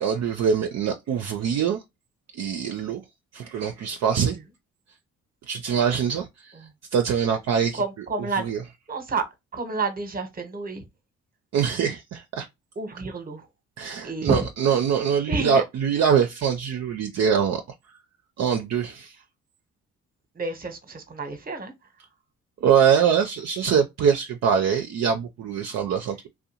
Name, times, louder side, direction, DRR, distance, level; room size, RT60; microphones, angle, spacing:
voice 1, 0.0-1.8 2.3-3.0 3.3-4.4 5.5-7.8 8.4-8.6 11.5-12.5 13.8-17.6 18.4-19.2 22.6-26.3, right 7 dB, 55° right, 0.5 m, -23 dB
voice 2, 7.7-8.4 8.9-9.2 9.5-10.8 12.8-13.5 14.0-14.5 15.3-15.6 20.3-21.7, right 3 dB, 25° right, 0.9 m, -29 dB
2.6 x 2.2 x 2.8 m
supercardioid pair, 60°, 33 cm